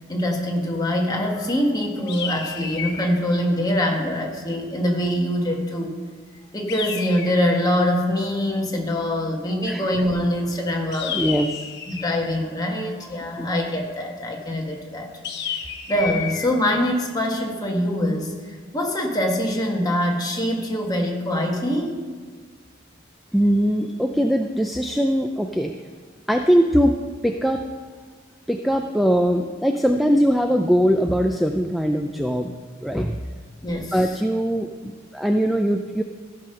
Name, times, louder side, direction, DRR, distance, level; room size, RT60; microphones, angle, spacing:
voice 1, 0.1-5.9 6.5-11.2 11.9-15.1 15.9-22.0 33.6-34.0, left 1 dB, 20° left, 0 dB, 1.4 m, -24 dB
sound 1, 2.1-3.2 6.7-7.7 10.9-12.2 15.2-16.5, left 7 dB, 55° left, 0.9 m, -31 dB
voice 2, 11.1-11.6 13.4-13.5 23.3-25.7 26.3-27.0 27.2-27.7 28.5-32.5 32.8-33.2 33.9-36.0, equal, ahead, 4 dB, 0.3 m, -21 dB
15.0 x 5.3 x 5.6 m, 1.6 s
head